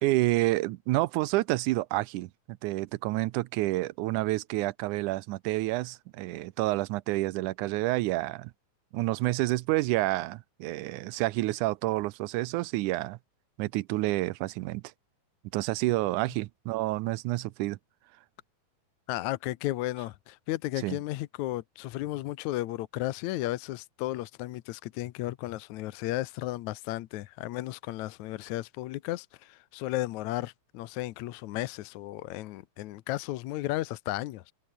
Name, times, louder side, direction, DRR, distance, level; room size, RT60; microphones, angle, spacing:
voice 1, 0.0-8.5 8.9-13.2 13.6-14.8 15.5-17.8 20.8-21.0, right 19 dB, 85° right, 2.1 m, -29 dB
voice 2, 19.1-34.5, left 16 dB, 75° left, 2.0 m, -34 dB
omnidirectional pair, 3.6 m